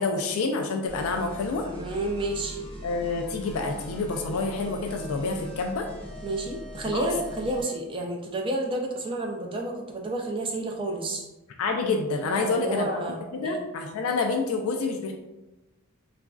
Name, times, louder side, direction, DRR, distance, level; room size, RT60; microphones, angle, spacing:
voice 1, 0.0-1.7 2.8-5.9 6.8-7.1 11.6-12.9 13.3-15.1, left 3 dB, 75° left, 3 dB, 0.3 m, -28 dB
sound 1, 0.9-7.8, equal, 25° left, 0.6 m, -41 dB
voice 2, 1.6-2.6 6.2-11.3 12.4-13.6, right 2 dB, 25° right, 1 dB, 0.3 m, -30 dB
3.9 x 2.4 x 2.3 m, 1.0 s
head